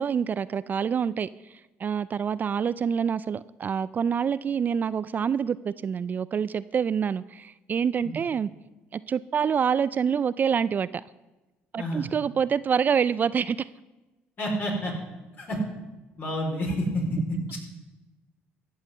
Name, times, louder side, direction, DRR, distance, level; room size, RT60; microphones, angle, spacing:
voice 1, 0.0-8.5 8.9-11.0 11.7-13.7, right 7 dB, 40° right, 17 dB, 0.3 m, -26 dB
voice 2, 14.4-14.9 15.4-15.6 16.2-17.6, equal, 45° left, 0 dB, 4.2 m, -29 dB
14.5 x 5.6 x 7.8 m, 1.1 s
supercardioid pair, 80°, 5 cm